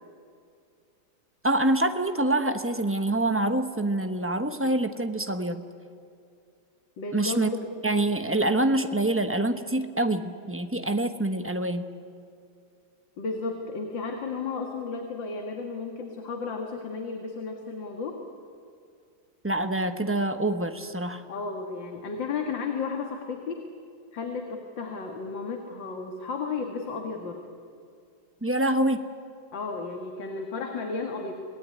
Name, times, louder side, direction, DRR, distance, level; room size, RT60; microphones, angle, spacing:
voice 1, 1.4-5.6 7.1-7.5 7.8-11.9 19.4-21.2 28.4-29.1, right 1 dB, 10° right, 8 dB, 0.7 m, -26 dB
voice 2, 7.0-7.7 13.2-18.2 21.3-23.7 24.1-27.5 29.5-31.3, left 4 dB, 75° left, 2 dB, 2.6 m, -33 dB
27.0 x 18.5 x 9.8 m, 2.4 s
omnidirectional pair, 2.1 m